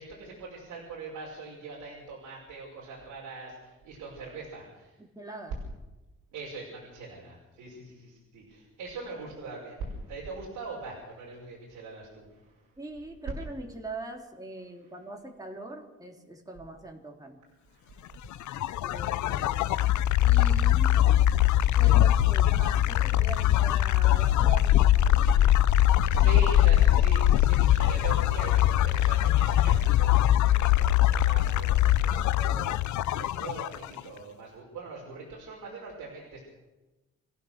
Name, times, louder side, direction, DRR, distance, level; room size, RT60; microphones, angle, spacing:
voice 1, 0.0-5.0 6.3-12.8 14.8-14.9 17.7-18.3 25.3-25.5 26.1-36.4, right 3 dB, 85° right, -3 dB, 5.9 m, -41 dB
voice 2, 5.0-5.5 12.8-17.4 18.8-19.7 20.2-21.0 21.8-25.3, right 2 dB, 10° right, 0 dB, 3.5 m, -42 dB
sound 1, 18.3-34.0, left 13 dB, 70° left, 0.7 m, -22 dB
27.0 x 15.5 x 6.7 m, 1.1 s
cardioid pair, 90°, 30 cm